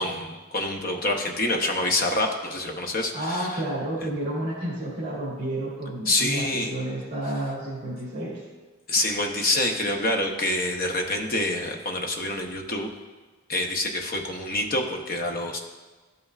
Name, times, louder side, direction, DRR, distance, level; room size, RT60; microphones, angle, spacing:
voice 1, 0.0-3.6 4.0-4.1 6.1-6.7 8.9-12.9 13.5-15.6, left 1 dB, 40° left, 3 dB, 0.8 m, -26 dB
voice 2, 3.1-8.4, right 1 dB, 35° right, -9 dB, 1.9 m, -30 dB
12.5 x 5.5 x 2.4 m, 1.3 s
head